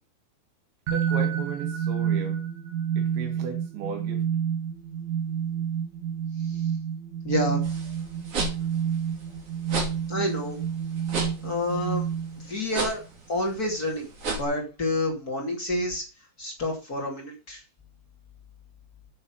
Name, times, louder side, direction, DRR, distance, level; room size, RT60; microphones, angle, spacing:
sound 1, 0.9-12.6, right 8 dB, 65° right, 1.8 m, -29 dB
voice 1, 0.9-2.4 3.0-4.3, right 5 dB, 85° right, 4.4 m, -36 dB
voice 2, 7.2-7.6 10.1-10.6 11.4-12.0 12.4-13.0 13.3-14.1 14.4-16.0 16.4-17.6, left 1 dB, 25° left, 2.2 m, -28 dB
sound 2, 7.6-14.4, right 2 dB, 40° right, 2.9 m, -34 dB
8.6 x 7.0 x 5.7 m
omnidirectional pair, 5.1 m